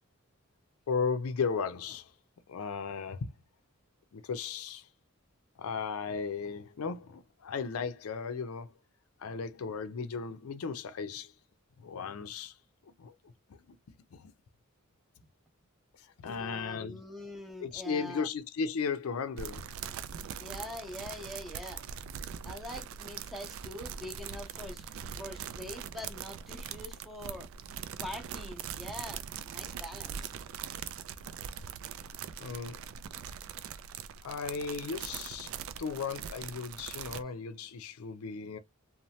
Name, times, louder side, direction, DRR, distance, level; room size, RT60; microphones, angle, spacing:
voice 1, 0.9-2.1 2.5-3.3 4.1-4.9 5.6-8.7 9.2-11.3 11.8-12.5 13.0-13.1 14.1-14.3 16.2-17.0 17.6-19.7 32.4-32.8 34.2-35.5 35.8-38.6, left 5 dB, 85° left, 0.4 m, -35 dB
voice 2, 16.2-18.3 20.4-21.8 22.4-24.8 25.1-27.5 28.0-30.3, left 1 dB, ahead, 0.7 m, -44 dB
sound 1, 19.4-37.2, right 8 dB, 70° right, 0.3 m, -42 dB
2.7 x 2.1 x 3.0 m
head